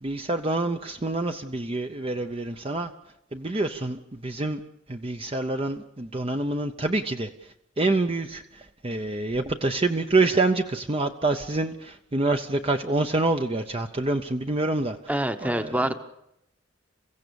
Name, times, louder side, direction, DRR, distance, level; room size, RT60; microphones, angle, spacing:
voice 1, 0.0-2.9 3.3-4.6 4.9-7.3 7.8-8.4 8.8-15.0 15.4-15.9, right 2 dB, 30° right, 6 dB, 0.7 m, -26 dB
voice 2, 15.1-15.9, right 1 dB, 5° right, 9 dB, 1.0 m, -26 dB
29.0 x 16.0 x 7.0 m, 0.82 s
head